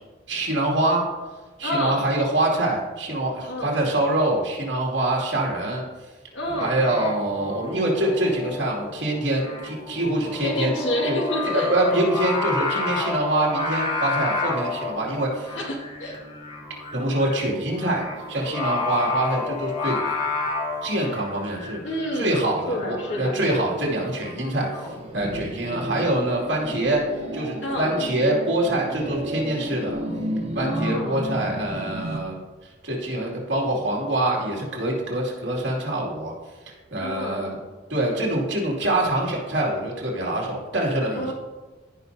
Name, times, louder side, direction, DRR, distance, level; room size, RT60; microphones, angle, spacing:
voice 1, 0.3-1.1 1.6-5.8 6.6-10.7 11.1-11.2 11.5-15.6 16.9-20.0 20.8-21.8 22.2-24.8 25.1-27.0 27.3-30.0 30.5-32.4 32.8-36.3 36.9-37.6 37.9-41.3, right 1 dB, 70° right, -2 dB, 2.5 m, -25 dB
voice 2, 1.6-2.0 3.4-3.7 6.3-6.8 10.4-11.7 15.6-16.2 21.8-22.4 22.7-23.6 27.6-27.9 30.6-31.2 37.0-37.5 41.1-41.3, equal, 70° left, -1 dB, 2.0 m, -28 dB
Singing, 6.4-24.9, left 3 dB, 35° left, 2.9 m, -31 dB
sound 1, 24.9-32.2, right 1 dB, 35° right, 1.1 m, -32 dB
16.0 x 5.4 x 2.7 m, 1.3 s
head